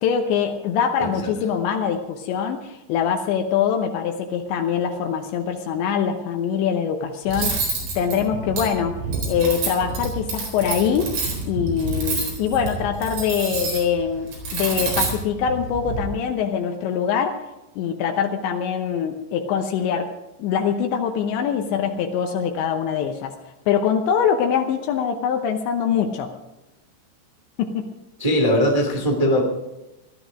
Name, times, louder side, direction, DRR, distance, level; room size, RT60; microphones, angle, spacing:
voice 1, 0.0-7.6 8.0-9.0 9.3-17.5 17.8-20.1 20.4-23.4 23.7-26.3 27.6-27.9, left 7 dB, 80° left, 4 dB, 3.1 m, -23 dB
voice 2, 1.0-1.3 28.2-29.4, equal, 60° right, 1 dB, 0.3 m, -20 dB
Cutlery silverware, 7.3-16.0, right 3 dB, 85° right, 6.7 m, -28 dB
18.5 x 12.5 x 5.0 m, 0.99 s
omnidirectional pair, 5.3 m